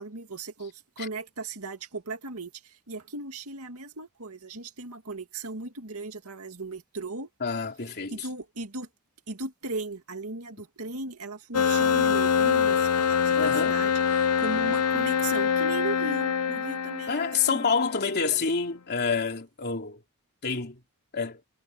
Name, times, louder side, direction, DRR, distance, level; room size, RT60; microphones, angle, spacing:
voice 1, 0.0-7.3 8.1-8.9 9.3-17.7, right 3 dB, 70° right, 2.4 m, -37 dB
voice 2, 7.4-8.3 13.4-13.8 17.1-20.0 20.4-20.8 21.1-21.4, left 5 dB, 50° left, 3.4 m, -28 dB
sound 1, 11.5-18.0, left 7 dB, 90° left, 0.9 m, -24 dB
head